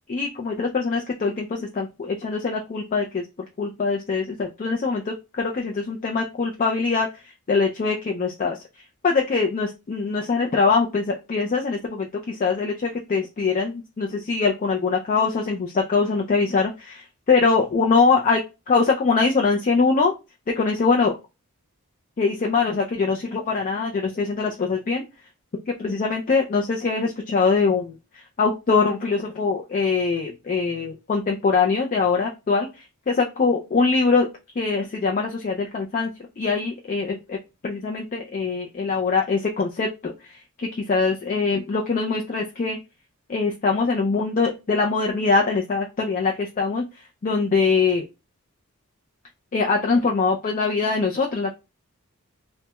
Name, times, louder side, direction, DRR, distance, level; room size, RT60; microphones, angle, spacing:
voice 1, 0.1-3.2 3.6-7.1 7.5-8.6 9.0-20.1 20.5-21.2 22.2-25.0 25.8-28.0 28.4-34.3 34.6-37.4 37.6-42.8 43.3-46.9 47.2-48.0 49.5-51.5, left 4 dB, 35° left, 1 dB, 0.4 m, -23 dB
3.3 x 2.1 x 2.9 m, 0.26 s
head